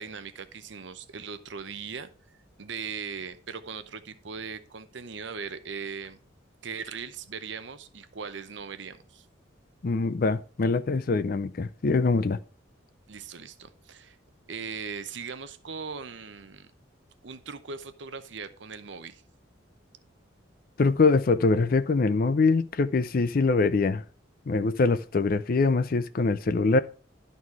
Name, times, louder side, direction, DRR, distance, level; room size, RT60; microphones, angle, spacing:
voice 1, 0.0-2.1 2.6-6.2 6.6-9.3 13.1-14.2 14.5-16.7 17.2-19.2, right 5 dB, 65° right, 0.7 m, -39 dB
voice 2, 9.8-12.4 20.8-24.0 24.5-26.8, left 3 dB, 45° left, 0.4 m, -23 dB
11.5 x 4.1 x 4.6 m
head